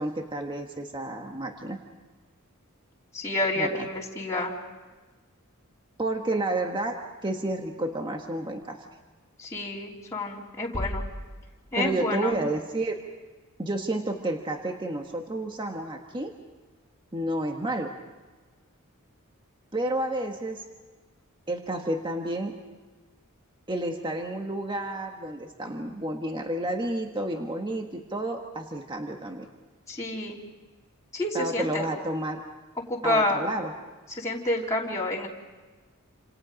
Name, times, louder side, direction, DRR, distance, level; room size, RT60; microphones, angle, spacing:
voice 1, 0.0-1.8 3.6-3.9 6.0-8.9 11.8-13.0 13.6-16.4 17.1-17.9 19.7-20.7 21.5-22.6 23.7-29.5 31.3-32.4 33.0-33.7, right 1 dB, 20° right, 3 dB, 1.4 m, -30 dB
voice 2, 3.1-4.5 9.4-11.0 11.7-12.3 29.9-30.4 31.1-31.9 32.9-33.4 34.2-35.3, left 1 dB, 15° left, -5 dB, 3.2 m, -28 dB
sound 1, 10.7-12.3, equal, 45° left, 2.2 m, -36 dB
29.0 x 27.0 x 5.2 m, 1.3 s
head